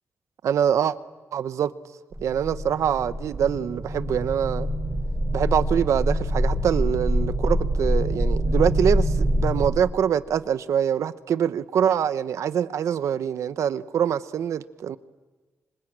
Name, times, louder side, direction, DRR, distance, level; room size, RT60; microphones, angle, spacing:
voice 1, 0.4-1.0 1.3-1.7 2.2-4.7 5.3-15.0, right 8 dB, 85° right, 0.9 m, -24 dB
sound 1, 2.1-9.7, equal, 15° right, 3.8 m, -25 dB
26.0 x 25.0 x 8.9 m
cardioid pair, 80°, 5 cm